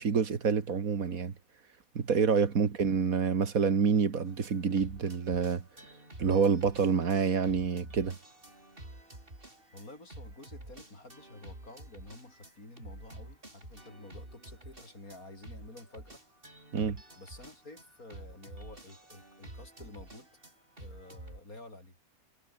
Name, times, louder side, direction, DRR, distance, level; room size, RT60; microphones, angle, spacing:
voice 1, 0.0-1.3 2.0-5.6 6.2-8.2 16.7-17.0, right 6 dB, 70° right, 2.2 m, -27 dB
sound 1, 4.3-21.4, right 1 dB, 35° right, 6.2 m, -50 dB
voice 2, 9.7-16.2 17.2-20.3 20.8-21.9, left 2 dB, 75° left, 7.3 m, -50 dB
omnidirectional pair, 1.5 m